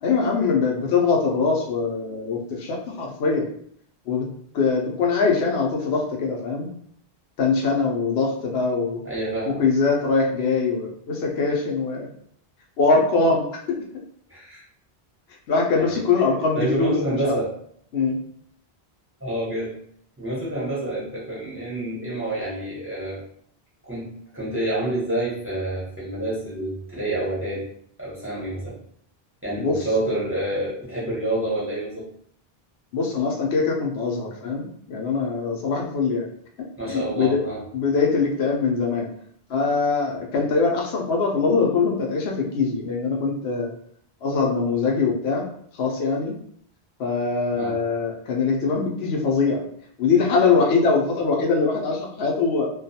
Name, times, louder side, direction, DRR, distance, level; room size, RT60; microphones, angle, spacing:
voice 1, 0.0-3.5 4.1-4.3 4.5-6.7 7.4-9.0 9.5-12.1 12.8-14.0 15.5-16.9 17.2-17.3 17.9-18.2 29.6-29.8 32.9-36.3 36.8-37.4 37.7-39.1 39.5-43.7 44.2-45.5 45.7-46.3 47.0-49.7 50.0-52.7, left 4 dB, 80° left, 0 dB, 0.8 m, -22 dB
voice 2, 9.0-9.6 14.3-14.6 15.8-16.0 16.5-17.5 19.2-19.7 20.2-23.2 23.8-27.7 28.0-28.8 29.4-32.1 36.8-37.6 47.5-47.8, right 1 dB, 15° right, -6 dB, 0.7 m, -28 dB
2.3 x 2.2 x 2.6 m, 0.64 s
omnidirectional pair, 1.0 m